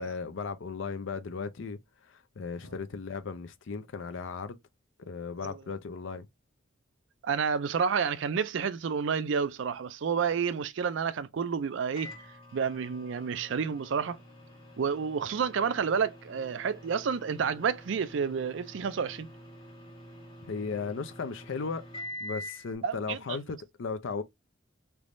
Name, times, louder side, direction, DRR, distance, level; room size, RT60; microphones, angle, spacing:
voice 1, 0.0-1.8 2.1-4.6 5.1-6.3 20.5-21.9 22.2-24.2, left 5 dB, 70° left, 0.5 m, -36 dB
voice 2, 7.2-12.2 12.5-14.2 14.8-19.3 22.8-23.4, right 6 dB, 65° right, 0.4 m, -30 dB
Microwave oven, 12.0-22.7, left 1 dB, 30° left, 1.5 m, -46 dB
3.4 x 3.0 x 2.5 m
head